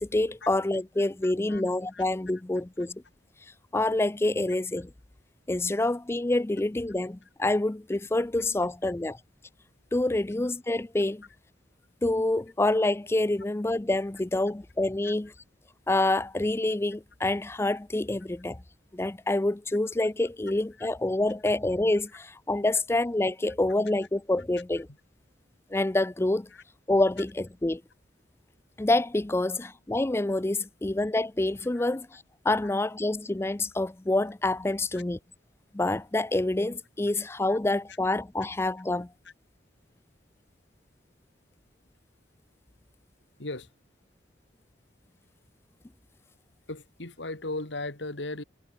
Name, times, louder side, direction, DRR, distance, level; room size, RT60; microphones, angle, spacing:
voice 1, 0.0-3.0 3.7-4.9 5.5-9.2 9.9-11.2 12.0-15.3 15.9-18.6 18.9-24.9 25.7-26.5 26.9-27.8 28.8-35.2 35.7-39.1, left 2 dB, 15° left, 0.5 m, -27 dB
voice 2, 1.2-1.6 1.9-2.0 5.8-5.9 15.0-15.1 20.8-20.9 26.5-26.6 31.8-31.9 32.6-32.7 34.9-35.0 37.5-37.6 39.2-39.3 43.4-43.7 46.7-48.4, left 2 dB, 85° left, 3.0 m, -37 dB
head